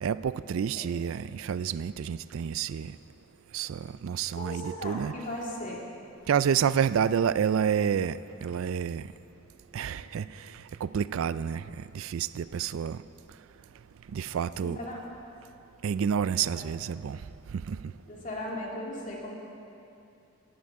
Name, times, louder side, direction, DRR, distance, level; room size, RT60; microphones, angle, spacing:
voice 1, 0.0-3.0 3.5-5.1 6.3-9.1 9.7-10.3 10.8-11.6 11.9-13.0 14.1-14.8 15.8-17.2 17.7-17.8, right 7 dB, 70° right, 0.3 m, -29 dB
voice 2, 4.3-5.8 14.6-15.0 16.5-16.6 18.1-19.3, left 1 dB, 35° left, 2.4 m, -37 dB
18.0 x 16.0 x 3.7 m
head